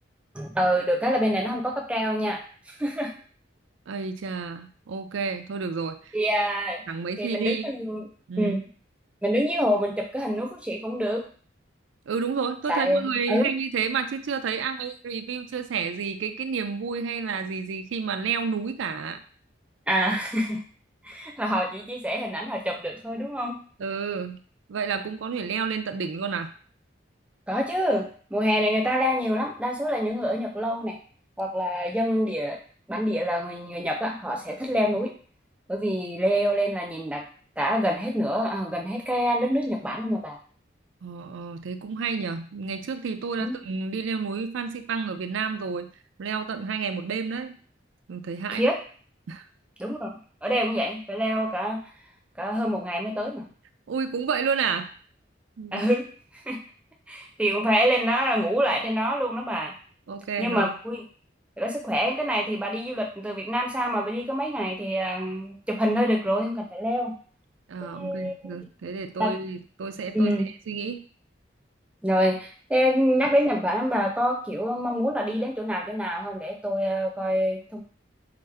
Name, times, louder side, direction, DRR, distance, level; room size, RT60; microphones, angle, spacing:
voice 1, 0.3-2.4 2.8-3.1 6.1-6.8 7.2-8.1 8.4-8.6 9.2-11.2 12.7-13.5 19.9-20.6 21.0-23.6 27.5-30.9 31.4-32.6 32.9-35.1 35.7-37.3 37.6-40.4 43.4-43.6 48.5-48.8 49.8-50.1 50.4-51.8 52.4-53.5 55.7-56.0 56.5-56.6 57.1-59.7 60.4-61.0 61.6-67.1 67.8-68.6 69.2-69.3 70.1-70.5 72.0-77.8, equal, 5° right, 1 dB, 0.5 m, -26 dB
voice 2, 3.9-6.1 6.9-7.6 8.3-8.6 12.1-19.2 23.8-24.4 24.7-26.5 41.0-45.9 46.2-47.6 48.1-48.7 49.3-49.4 53.9-54.9 55.6-55.9 60.1-60.7 67.7-70.3 70.7-71.0, right 5 dB, 85° right, 9 dB, 0.4 m, -30 dB
4.9 x 2.1 x 3.3 m, 0.42 s
head